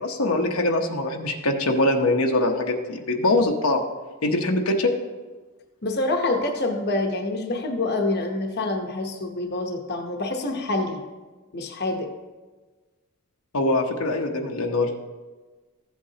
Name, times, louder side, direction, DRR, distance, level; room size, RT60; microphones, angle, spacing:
voice 1, 0.0-3.8 4.2-4.9 13.5-14.9, left 2 dB, 90° left, 2 dB, 1.0 m, -23 dB
voice 2, 5.8-11.0 11.5-12.2, left 2 dB, 50° left, 3 dB, 0.9 m, -26 dB
14.5 x 8.1 x 2.8 m, 1.3 s
head